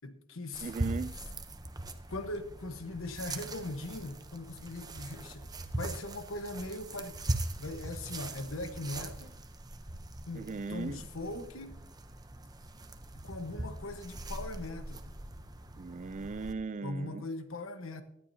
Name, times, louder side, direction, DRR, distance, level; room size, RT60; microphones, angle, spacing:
voice 1, 0.0-0.7 2.1-9.4 10.3-11.8 13.1-15.2 16.8-18.0, left 2 dB, 85° left, 1.2 m, -40 dB
sound 1, 0.5-16.5, right 2 dB, 20° right, 0.8 m, -41 dB
voice 2, 0.6-1.2 10.3-11.0 15.8-17.2, right 4 dB, 40° right, 0.4 m, -38 dB
19.0 x 12.5 x 2.8 m
head